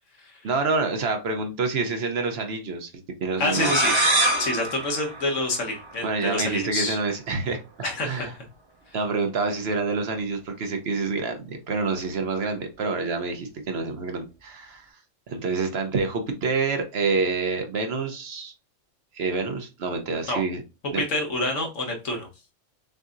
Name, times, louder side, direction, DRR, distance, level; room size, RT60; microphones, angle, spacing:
voice 1, 0.4-2.9 3.2-3.7 6.0-7.6 8.0-8.3 8.9-14.9 15.3-18.5 19.1-20.6 20.9-21.0, right 4 dB, 60° right, 5 dB, 0.9 m, -27 dB
voice 2, 3.4-3.9 4.4-7.0 7.8-8.3 20.3-20.4 21.0-22.3, left 2 dB, 75° left, 1 dB, 1.5 m, -27 dB
sound 1, 3.5-6.1, right 1 dB, 30° right, 0.6 m, -25 dB
6.1 x 2.7 x 2.5 m, 0.29 s
omnidirectional pair, 1.3 m